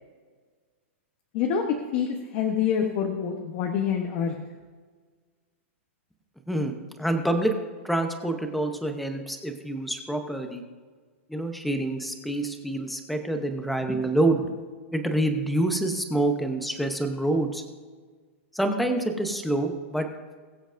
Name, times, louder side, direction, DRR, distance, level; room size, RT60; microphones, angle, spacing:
voice 1, 1.9-4.3, left 7 dB, 35° left, 3 dB, 1.0 m, -26 dB
voice 2, 6.5-7.5 7.8-10.6 11.3-14.4 14.9-17.6 18.5-20.1, right 1 dB, ahead, 5 dB, 0.8 m, -27 dB
21.5 x 7.9 x 2.6 m, 1.5 s
supercardioid pair, 170°, 7 cm